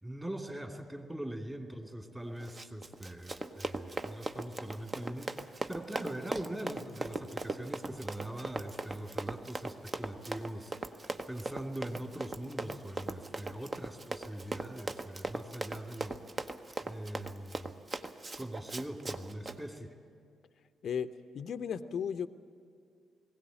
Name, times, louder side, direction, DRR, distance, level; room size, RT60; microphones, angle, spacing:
voice 1, 0.0-16.2 16.8-17.7 18.4-20.0, right 1 dB, 15° right, 4 dB, 2.5 m, -42 dB
Run, 2.4-19.6, right 3 dB, 30° right, 0.9 m, -39 dB
voice 2, 21.3-22.3, left 7 dB, 55° left, 12 dB, 0.6 m, -34 dB
20.5 x 17.0 x 9.0 m, 2.2 s
figure-of-eight pair, 40°, 0 cm